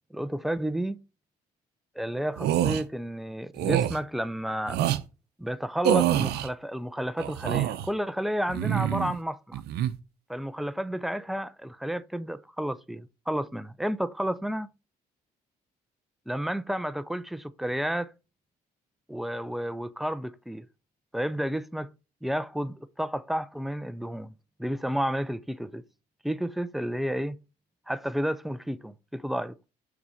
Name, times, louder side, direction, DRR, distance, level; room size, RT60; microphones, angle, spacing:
voice 1, 0.1-1.0 2.0-4.8 5.4-9.6 10.3-14.7 16.3-18.1 19.1-20.7 21.1-21.9 22.2-24.3 24.6-25.8 26.2-27.4 27.9-29.5, equal, ahead, 0.5 m, -31 dB
sound 1, 2.4-2.8 3.6-4.0 4.7-5.0 5.8-6.5 7.2-7.9 8.5-9.2 9.5-9.9, right 11 dB, 75° right, 0.7 m, -26 dB
6.0 x 4.0 x 6.3 m
cardioid pair, 110°, 17 cm